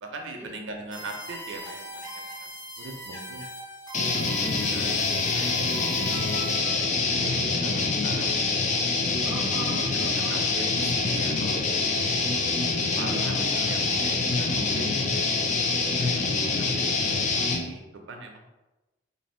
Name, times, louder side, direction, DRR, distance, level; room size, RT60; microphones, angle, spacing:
voice 1, 0.0-2.5 2.8-3.5 4.1-4.9 5.3-8.7 10.0-12.2 13.0-13.3 13.7-15.2 16.0-17.3 17.6-18.5, right 2 dB, 70° right, 3 dB, 0.5 m, -41 dB
sound 1, 0.9-6.8, left 1 dB, 20° left, 1.1 m, -40 dB
sound 2, 3.9-17.7, left 3 dB, 35° left, 0.4 m, -25 dB
voice 2, 9.2-10.4 13.0-13.8, right 1 dB, 10° right, -3 dB, 0.6 m, -39 dB
2.8 x 2.6 x 4.2 m, 1.0 s
head